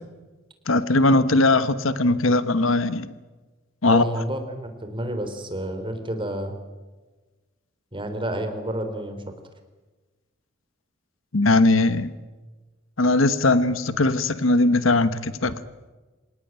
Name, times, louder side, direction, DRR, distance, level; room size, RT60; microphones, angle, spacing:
voice 1, 0.7-3.1 3.8-4.0 11.3-12.1 13.0-15.6, left 2 dB, 80° left, 1.2 m, -20 dB
voice 2, 3.8-6.5 7.9-9.3, right 1 dB, 25° right, 3.6 m, -29 dB
26.0 x 18.5 x 9.1 m
head